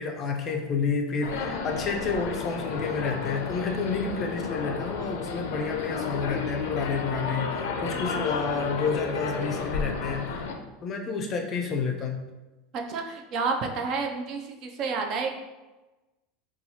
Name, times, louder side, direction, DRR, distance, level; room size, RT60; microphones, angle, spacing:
voice 1, 0.0-10.5 10.8-12.2, left 5 dB, 30° left, 3 dB, 0.4 m, -30 dB
sound 1, 1.2-10.5, left 5 dB, 85° left, 0.4 m, -32 dB
voice 2, 12.7-15.4, right 4 dB, 40° right, 3 dB, 0.4 m, -30 dB
2.8 x 2.3 x 4.1 m, 1.1 s
supercardioid pair, 155°, 0 cm